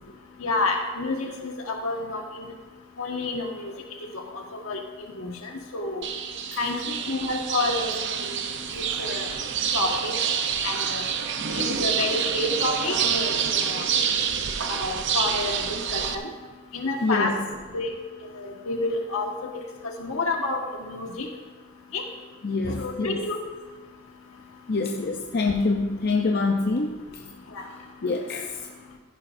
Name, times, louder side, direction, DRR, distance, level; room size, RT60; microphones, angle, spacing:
voice 1, 0.4-2.4 3.0-3.7 4.1-4.8 5.2-5.3 5.7-6.1 6.6-6.8 7.1-7.9 8.7-9.3 9.7-10.1 10.6-11.0 11.5-13.8 14.7-16.3 16.7-17.3 17.7-17.9 18.3-19.3 20.0-20.6 20.9-21.3 21.9-22.0 22.8-23.4, left 2 dB, 70° left, 2 dB, 1.5 m, -29 dB
sound 1, 6.0-16.1, right 7 dB, 55° right, 0.6 m, -27 dB
voice 2, 17.0-17.4 22.4-23.2 24.7-27.3 28.0-28.6, left 3 dB, 45° left, 2 dB, 0.6 m, -26 dB
14.5 x 10.5 x 2.6 m, 1.4 s
head